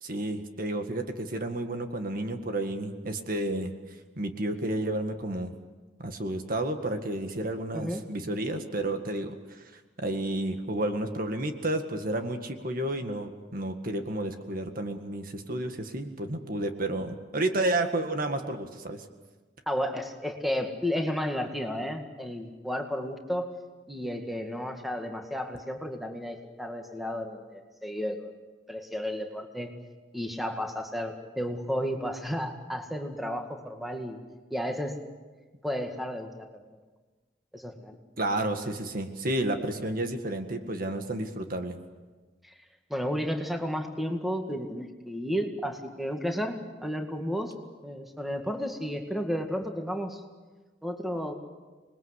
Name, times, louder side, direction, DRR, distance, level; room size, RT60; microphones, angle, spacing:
voice 1, 0.0-3.7 4.2-5.5 6.0-19.1 38.2-41.8, right 1 dB, 50° right, 6 dB, 1.9 m, -31 dB
voice 2, 19.7-23.5 23.9-28.3 28.7-29.7 30.1-34.2 34.5-35.0 35.6-36.5 37.5-38.0 42.4-42.5 42.9-47.6 47.8-50.2 50.8-51.4, equal, ahead, 3 dB, 2.1 m, -32 dB
27.0 x 21.0 x 8.2 m, 1.3 s
head